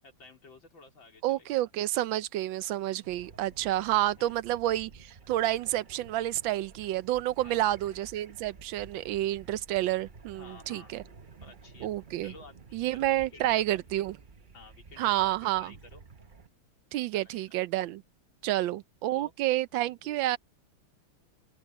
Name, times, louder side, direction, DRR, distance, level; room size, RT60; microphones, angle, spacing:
voice 1, 0.0-1.5 2.9-3.6 4.2-4.4 7.4-7.6 9.1-9.2 10.3-10.9 11.4-11.9 12.2-12.8 13.3-13.8 14.5-16.0 17.1-17.5 18.4-18.6 19.1-19.6 20.0-20.2, left 3 dB, 85° left, 4.7 m, -53 dB
voice 2, 1.2-11.0 11.8-12.3 12.7-14.2 15.0-15.7 16.9-18.0 18.4-20.4, right 14 dB, 85° right, 1.4 m, -29 dB
sound 1, 3.0-16.5, right 4 dB, 35° right, 0.8 m, -52 dB
omnidirectional pair, 2.1 m